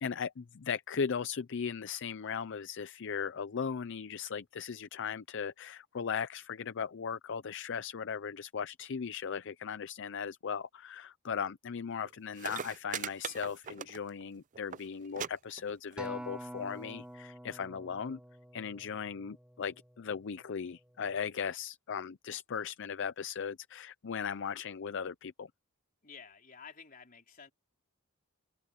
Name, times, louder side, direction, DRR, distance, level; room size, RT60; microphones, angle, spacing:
voice 1, 0.0-18.2 18.5-25.5, left 6 dB, 60° left, 0.5 m, -37 dB
sound 1, 12.1-12.2 12.3-14.3 14.5-14.8 15.2-15.3 15.6-16.1 16.9-17.0, right 8 dB, 35° right, 0.4 m, -40 dB
Acoustic guitar, 16.0-20.4 21.0-21.2, right 1 dB, 5° right, 1.1 m, -47 dB
voice 2, 26.0-27.5, left 6 dB, 40° left, 3.9 m, -52 dB
head